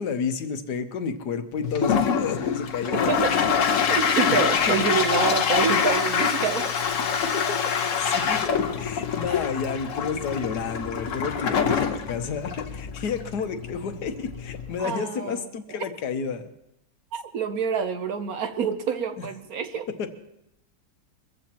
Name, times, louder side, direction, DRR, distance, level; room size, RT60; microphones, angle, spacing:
voice 1, 0.0-3.2 4.7-5.0 8.0-16.5 19.2-19.3 20.0-20.1, left 5 dB, 70° left, 8 dB, 1.5 m, -31 dB
Toilet flush, 1.6-14.8, left 6 dB, 55° left, 1.1 m, -25 dB
voice 2, 3.9-6.8 14.8-15.8 17.1-19.9, right 6 dB, 65° right, 9 dB, 1.1 m, -27 dB
23.0 x 14.5 x 2.9 m, 0.84 s
omnidirectional pair, 1.9 m